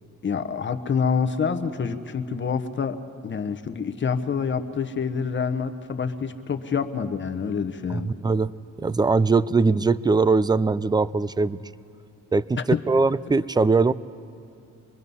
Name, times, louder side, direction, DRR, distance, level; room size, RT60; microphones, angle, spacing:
voice 1, 0.2-3.0 3.2-8.1 12.7-12.8, left 6 dB, 40° left, 9 dB, 1.1 m, -27 dB
voice 2, 7.9-8.5 8.8-11.6 12.3-13.9, right 4 dB, 15° right, 18 dB, 0.4 m, -21 dB
24.0 x 22.0 x 5.5 m, 2.6 s
cardioid pair, 90°, 30 cm